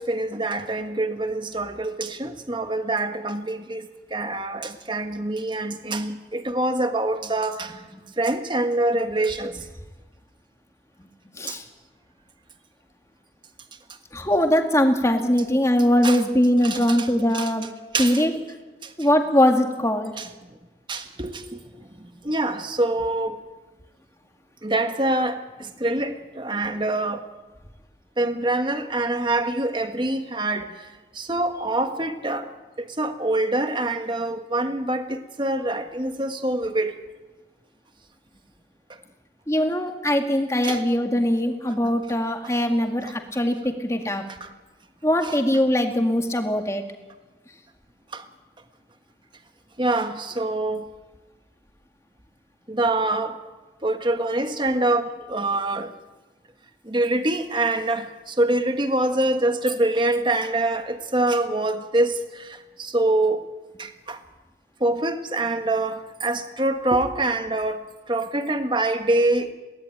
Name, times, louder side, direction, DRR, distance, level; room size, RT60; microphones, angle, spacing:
voice 1, 0.0-7.8 8.2-9.6 11.5-11.6 16.0-16.2 16.6-17.1 17.3-17.5 17.9-18.2 18.8-18.9 20.2-20.3 20.9-21.6 22.2-23.4 24.6-27.2 28.2-30.8 31.1-32.5 32.8-36.9 40.6-40.8 44.4-44.5 45.2-45.3 48.1-48.2 49.8-50.9 52.7-53.4 53.8-55.9 56.8-63.4 63.8-64.2 64.8-69.5, right 2 dB, 25° right, 1.4 m, -25 dB
voice 2, 14.1-17.7 18.0-18.3 19.0-20.1 39.5-44.2 45.0-46.8, left 1 dB, 15° left, 2.0 m, -21 dB
22.5 x 17.5 x 9.1 m
head